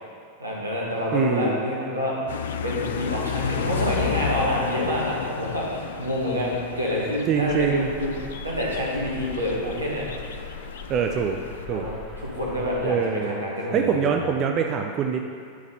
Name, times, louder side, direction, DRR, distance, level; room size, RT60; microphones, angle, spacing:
voice 1, 0.4-2.2 2.6-8.1 8.4-10.0 11.7-14.3, left 1 dB, 80° right, -5 dB, 1.8 m, -27 dB
voice 2, 1.1-1.6 7.3-7.9 10.9-11.4 11.7-11.9 12.8-13.4 13.7-15.2, right 7 dB, 35° right, 3 dB, 0.5 m, -24 dB
sound 1, 2.3-11.7, left 7 dB, 60° left, 0.4 m, -32 dB
sound 2, 7.5-12.8, left 3 dB, 40° left, 1.9 m, -40 dB
9.8 x 4.1 x 5.5 m, 2.3 s
figure-of-eight pair, 90°, 0 cm